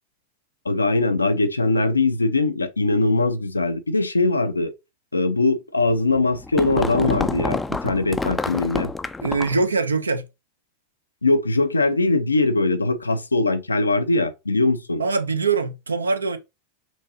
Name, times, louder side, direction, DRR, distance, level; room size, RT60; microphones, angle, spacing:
voice 1, 0.7-4.7 5.1-8.9 11.2-15.0, left 2 dB, 80° left, 0.4 m, -21 dB
sound 1, 6.1-9.7, left 3 dB, 10° left, 0.3 m, -27 dB
voice 2, 9.2-10.3 15.0-16.4, right 4 dB, 75° right, 0.5 m, -22 dB
6.1 x 2.7 x 2.6 m
figure-of-eight pair, 90°, 0 cm